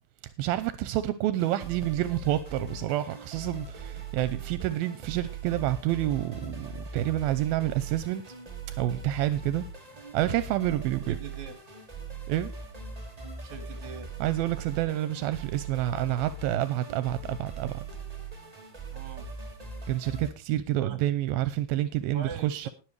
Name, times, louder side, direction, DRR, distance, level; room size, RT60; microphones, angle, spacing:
voice 1, 0.4-8.3 8.7-9.7 9.9-11.2 12.3-12.5 14.2-17.9 19.9-22.7, right 14 dB, 85° right, 2.5 m, -28 dB
sound 1, 1.3-20.3, right 3 dB, 20° right, 1.1 m, -41 dB
voice 2, 11.1-11.6 13.4-14.1 18.9-19.3 20.8-21.0 22.1-22.7, right 6 dB, 55° right, 3.2 m, -42 dB
20.5 x 7.6 x 3.2 m
omnidirectional pair, 4.2 m